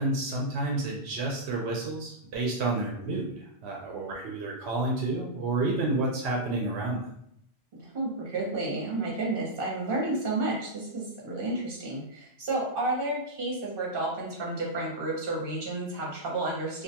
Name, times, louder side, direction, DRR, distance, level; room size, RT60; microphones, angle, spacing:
voice 1, 0.0-3.3 3.6-7.0, right 2 dB, 90° right, -1 dB, 0.8 m, -30 dB
voice 2, 7.7-16.8, right 2 dB, 60° right, -3 dB, 1.0 m, -31 dB
2.4 x 2.2 x 2.8 m, 0.70 s
omnidirectional pair, 1.1 m